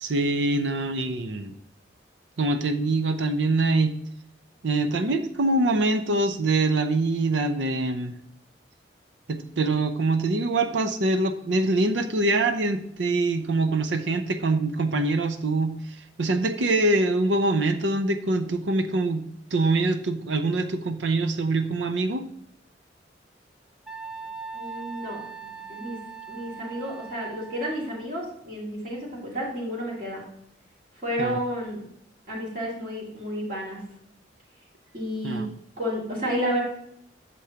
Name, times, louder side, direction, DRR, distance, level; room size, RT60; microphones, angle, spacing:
voice 1, 0.0-1.5 2.4-3.9 4.6-8.1 9.3-15.7 16.2-19.2 19.5-22.2 31.2-31.4 35.2-35.5, right 2 dB, 75° right, 9 dB, 0.6 m, -24 dB
Wind instrument woodwind instrument, 23.9-27.9, right 5 dB, 5° right, 0.5 m, -40 dB
voice 2, 24.5-26.0 26.3-30.2 31.0-31.8 32.3-33.8 34.9-35.4 35.8-36.6, equal, 45° right, -5 dB, 2.5 m, -31 dB
8.2 x 6.9 x 2.9 m, 0.74 s
head